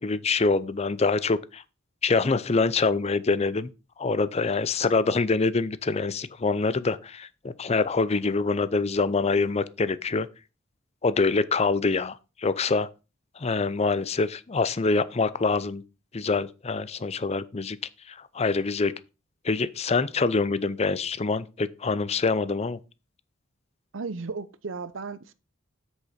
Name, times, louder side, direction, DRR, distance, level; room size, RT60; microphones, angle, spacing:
voice 1, 0.0-1.6 2.0-3.7 4.0-10.3 11.0-12.9 13.4-15.8 16.1-17.8 18.1-18.9 19.4-22.8, left 4 dB, 30° left, 0.5 m, -25 dB
voice 2, 23.9-25.3, right 4 dB, 70° right, 0.7 m, -35 dB
8.1 x 6.5 x 5.0 m
head